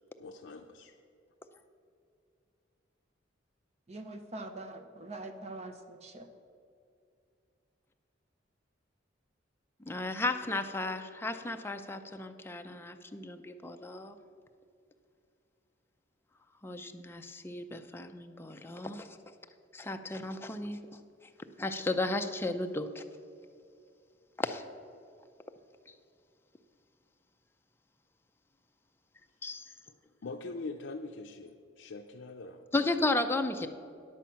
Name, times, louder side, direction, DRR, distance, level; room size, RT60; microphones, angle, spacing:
voice 1, 0.2-0.9 30.2-32.6, left 3 dB, 75° left, 3 dB, 0.5 m, -43 dB
voice 2, 3.9-6.3, right 2 dB, 35° right, 8 dB, 0.7 m, -43 dB
voice 3, 9.9-14.2 16.6-19.2 19.7-20.8 21.6-23.0 24.4-24.6 29.4-29.6 32.7-33.7, left 2 dB, 10° left, 6 dB, 0.5 m, -34 dB
10.0 x 7.5 x 5.7 m, 2.5 s
head